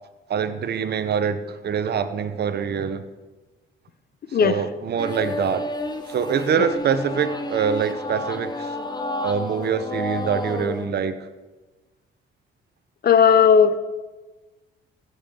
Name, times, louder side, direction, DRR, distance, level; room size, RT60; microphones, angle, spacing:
voice 1, 0.3-3.0 4.3-5.7 6.1-8.7 9.2-11.2, right 7 dB, 55° right, 1.0 m, -24 dB
sound 1, 5.0-10.9, left 2 dB, 20° left, 1.2 m, -31 dB
voice 2, 13.0-13.8, left 7 dB, 50° left, 0.9 m, -15 dB
15.5 x 5.7 x 7.0 m
cardioid pair, 90°, 20 cm